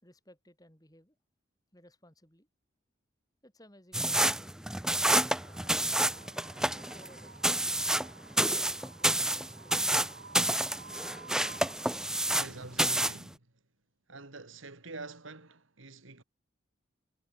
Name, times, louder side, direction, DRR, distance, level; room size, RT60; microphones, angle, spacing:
voice 1, 0.0-1.2 1.7-2.5 3.4-6.3 6.9-7.8 8.4-10.0, left 1 dB, 20° left, 6.1 m, -59 dB
sound 1, 3.9-12.5 12.8-13.2, right 1 dB, 5° right, 0.3 m, -28 dB
Wind, 4.6-12.7, right 4 dB, 50° right, 2.9 m, -52 dB
voice 2, 12.3-13.5 14.1-16.2, right 3 dB, 80° right, 2.6 m, -46 dB
head